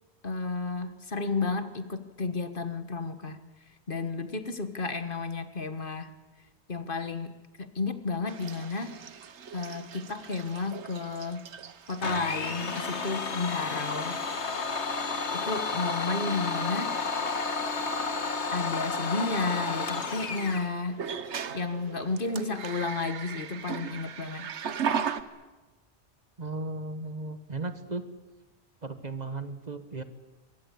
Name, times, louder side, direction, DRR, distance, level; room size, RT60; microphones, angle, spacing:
voice 1, 0.2-3.4 3.9-6.1 6.7-7.3 7.6-9.0 9.5-11.5 11.9-14.2 15.3-17.0 18.5-21.0 21.5-24.5, left 3 dB, 50° left, 10 dB, 1.6 m, -32 dB
sound 1, 8.3-12.4 12.7-13.2 14.1-14.2 14.7-15.2 15.4-15.8 17.8-17.9 20.9-25.2, right 7 dB, 90° right, 1.4 m, -37 dB
Domestic sounds home sounds, 12.0-20.7, left 4 dB, 80° left, 2.0 m, -32 dB
voice 2, 26.4-28.1 28.8-30.0, right 3 dB, 40° right, 10 dB, 1.5 m, -36 dB
25.0 x 22.5 x 8.4 m, 1.2 s
omnidirectional pair, 1.1 m